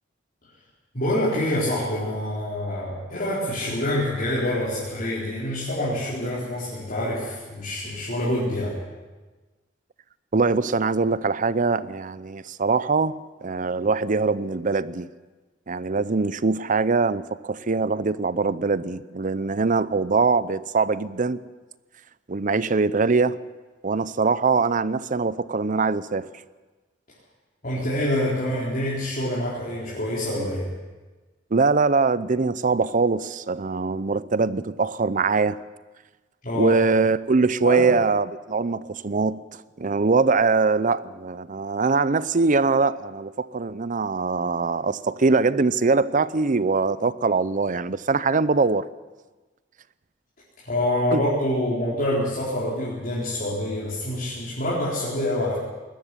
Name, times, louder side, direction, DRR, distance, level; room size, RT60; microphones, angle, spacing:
voice 1, 0.9-8.8 27.6-30.7 36.4-36.8 37.6-37.9 50.6-55.6, left 1 dB, 50° left, 4.3 m, -26 dB
voice 2, 10.3-15.1 15.7-21.4 22.3-23.4 23.8-26.3 31.5-35.6 36.6-39.4 39.8-48.9 51.1-51.2, right 4 dB, 45° right, 0.6 m, -22 dB
20.5 x 13.0 x 9.8 m
head